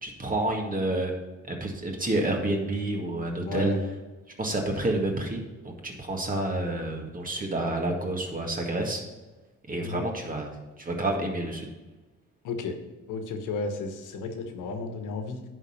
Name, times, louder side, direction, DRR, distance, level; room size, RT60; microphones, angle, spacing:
voice 1, 0.0-1.1 1.5-3.7 4.4-9.0 9.7-10.5 10.8-11.7, right 2 dB, 30° right, 1 dB, 1.8 m, -29 dB
voice 2, 3.4-3.8 9.8-10.0 12.4-12.8 13.1-15.4, left 3 dB, 85° left, 6 dB, 1.2 m, -33 dB
10.0 x 3.9 x 6.5 m, 1.2 s
cardioid pair, 90°, 30 cm